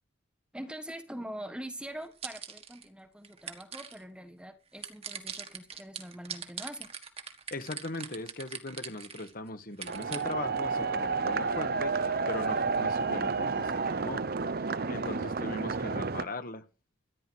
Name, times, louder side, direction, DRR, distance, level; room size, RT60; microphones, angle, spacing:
voice 1, 0.5-6.9, right 1 dB, 5° right, 1.4 m, -43 dB
spray can noise, 2.0-2.9 3.2-4.0 4.8-9.3 9.7-10.3, right 7 dB, 30° right, 1.7 m, -41 dB
voice 2, 7.5-14.2 14.6-16.6, left 2 dB, 45° left, 1.5 m, -39 dB
sound 1, 9.9-16.2, right 4 dB, 50° right, 0.7 m, -31 dB
14.0 x 10.5 x 6.2 m
head